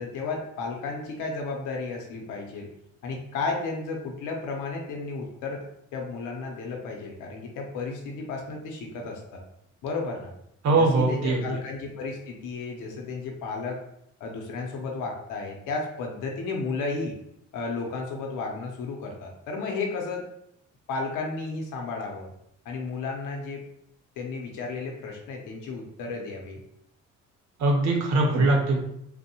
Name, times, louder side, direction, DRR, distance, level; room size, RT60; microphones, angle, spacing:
voice 1, 0.0-2.7 3.0-5.6 5.9-9.4 9.8-10.3 10.7-13.8 14.2-17.1 17.5-20.3 20.9-22.3 22.7-23.6 24.2-26.6, left 3 dB, 85° left, 1 dB, 0.6 m, -33 dB
voice 2, 10.6-11.4 27.6-28.8, right 2 dB, 65° right, 1 dB, 0.7 m, -21 dB
2.6 x 2.1 x 2.7 m, 0.75 s
cardioid pair, 90°, 30 cm